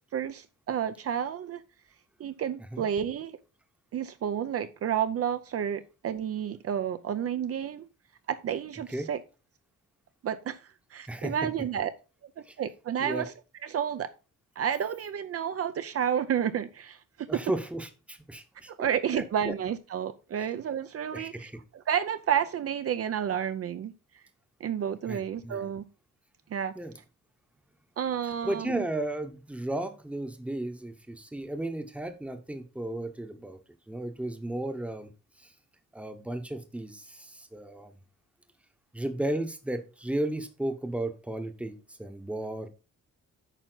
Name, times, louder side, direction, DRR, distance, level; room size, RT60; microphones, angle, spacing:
voice 1, 0.1-1.6 2.2-3.4 3.9-7.9 8.3-9.2 10.2-10.6 10.9-11.9 12.6-13.3 13.6-14.1 14.6-17.3 18.8-21.5 21.9-23.9 24.6-25.8 26.5-26.7 28.0-28.8, right 9 dB, 50° right, 11 dB, 0.6 m, -30 dB
voice 2, 17.3-18.9 19.1-19.5 20.4-20.5 21.1-21.6 25.1-25.7 26.7-26.9 28.4-33.6 33.9-35.1 35.4-35.5 35.9-38.0 38.9-42.7, right 1 dB, 5° right, 8 dB, 0.9 m, -34 dB
9.1 x 5.7 x 3.9 m, 0.31 s
wide cardioid pair, 170°, 31 cm